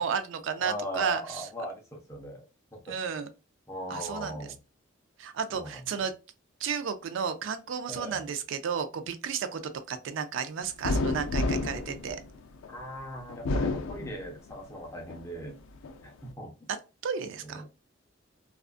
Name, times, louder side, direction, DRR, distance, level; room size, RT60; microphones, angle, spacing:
voice 1, 0.0-1.4 2.9-3.3 3.9-4.4 5.2-6.1 6.6-12.2 17.0-17.6, right 6 dB, 75° right, 0.3 m, -32 dB
voice 2, 0.6-2.4 2.7-3.0 3.7-4.6 5.5-5.9 7.9-8.2 12.7-15.6 16.0-16.5 17.4-17.6, equal, 15° left, 0.6 m, -39 dB
sound 1, 10.8-12.8 13.3-14.6 15.1-16.0, left 2 dB, 85° left, 0.4 m, -30 dB
2.4 x 2.3 x 2.3 m
head